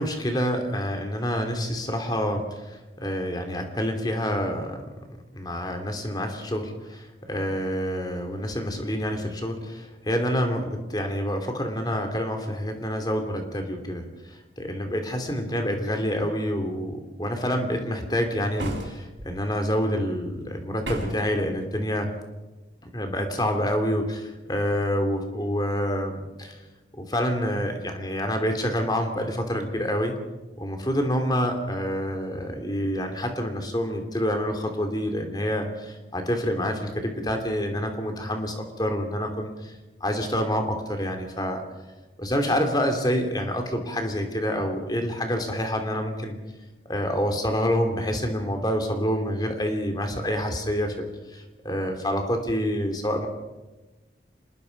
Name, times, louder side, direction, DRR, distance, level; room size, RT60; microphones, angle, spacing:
voice 1, 0.0-22.1 22.8-26.6 26.9-30.1 30.6-39.7 40.0-41.6 42.2-46.4 46.9-53.3, equal, 20° left, 5 dB, 2.8 m, -27 dB
sound 1, 18.6-19.3 20.8-21.3, right 1 dB, 80° right, 5.8 m, -33 dB
26.0 x 20.5 x 5.3 m, 1.1 s
head